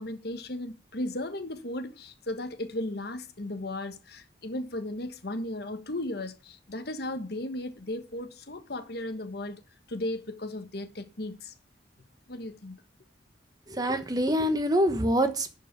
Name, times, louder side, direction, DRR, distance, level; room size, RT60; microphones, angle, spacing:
voice 1, 0.0-9.6 9.9-11.5 12.3-12.8, left 1 dB, 60° left, 1.3 m, -35 dB
voice 2, 13.7-15.6, equal, 20° right, 1.2 m, -25 dB
11.5 x 5.2 x 6.7 m
head